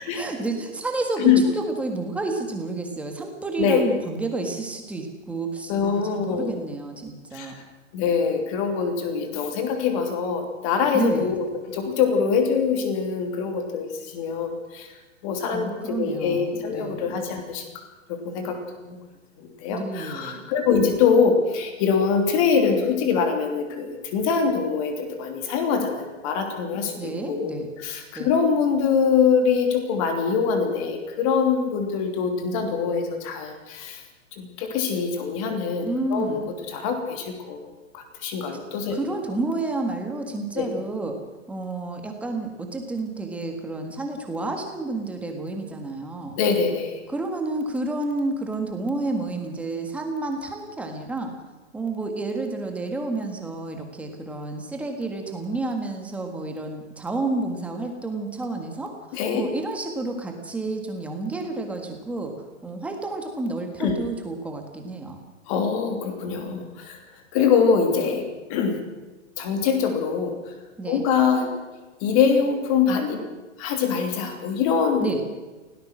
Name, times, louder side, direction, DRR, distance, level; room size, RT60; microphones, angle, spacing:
voice 1, 0.1-7.6 10.9-11.3 15.5-17.2 19.7-20.5 26.9-27.7 28.1-28.3 35.8-36.5 38.9-41.2 41.5-46.4 47.1-51.3 51.7-62.3 62.6-65.2 70.8-71.0 75.0-75.2, right 2 dB, 5° right, 3 dB, 1.6 m, -30 dB
voice 2, 5.7-6.6 7.3-7.6 7.9-14.9 15.2-17.6 18.1-18.6 18.8-19.0 19.4-27.5 27.8-34.0 34.4-36.4 36.7-37.7 37.9-39.0 40.5-40.6 46.4-47.0 59.1-59.4 63.8-64.0 65.5-67.0 67.3-68.8 69.4-70.3 70.9-71.5 72.0-73.2 73.6-75.0, left 6 dB, 25° left, 5 dB, 3.0 m, -23 dB
24.5 x 17.5 x 6.2 m, 1.2 s
hypercardioid pair, 170°, 38 cm